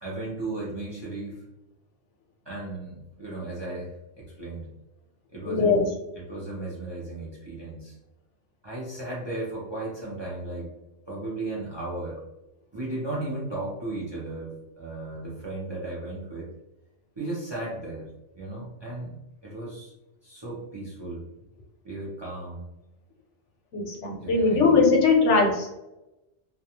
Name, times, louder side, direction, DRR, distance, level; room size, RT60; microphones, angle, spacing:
voice 1, 0.0-1.4 2.5-4.7 5.3-5.8 6.2-8.0 8.6-10.7 11.1-12.2 12.7-16.5 17.2-19.2 19.4-19.9 20.2-21.3 21.8-22.7 24.2-24.6, right 2 dB, 35° right, -5 dB, 0.5 m, -35 dB
voice 2, 5.5-5.9 23.7-25.7, left 4 dB, 90° left, 1 dB, 1.0 m, -20 dB
2.3 x 2.3 x 2.8 m, 0.97 s
omnidirectional pair, 1.2 m